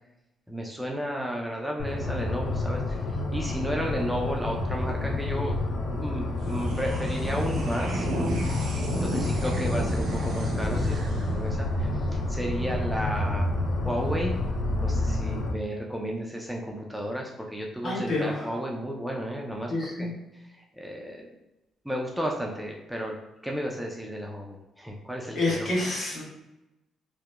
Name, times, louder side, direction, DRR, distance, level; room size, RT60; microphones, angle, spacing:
voice 1, 0.5-3.1 3.3-5.5 5.9-8.1 9.0-13.5 13.8-14.3 14.8-19.7 20.0-20.1 20.3-21.3 21.8-23.2 23.4-25.7, equal, ahead, -1 dB, 0.3 m, -33 dB
Viral Erra Ector, 1.8-15.5, left 2 dB, 70° left, 0.4 m, -29 dB
sound 1, 6.3-13.1, right 1 dB, 85° right, 0.7 m, -33 dB
voice 2, 8.9-9.2 17.8-18.5 19.7-20.1 25.3-26.2, left 2 dB, 55° left, -5 dB, 1.1 m, -28 dB
2.8 x 2.0 x 2.2 m, 0.97 s
cardioid pair, 90°, 0 cm